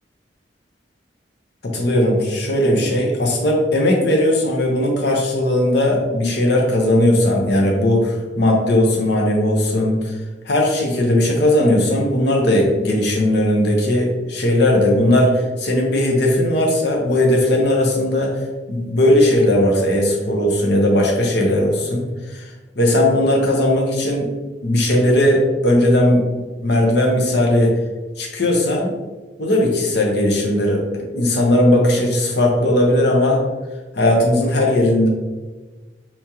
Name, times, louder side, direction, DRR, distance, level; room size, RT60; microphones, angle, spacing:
voice 1, 1.6-10.0 10.5-18.4 18.7-22.5 22.8-24.3 24.6-26.2 26.6-27.7 28.2-28.9 29.4-33.4 33.9-35.1, left 1 dB, 65° left, 0 dB, 0.8 m, -17 dB
4.4 x 3.6 x 2.9 m, 1.2 s
head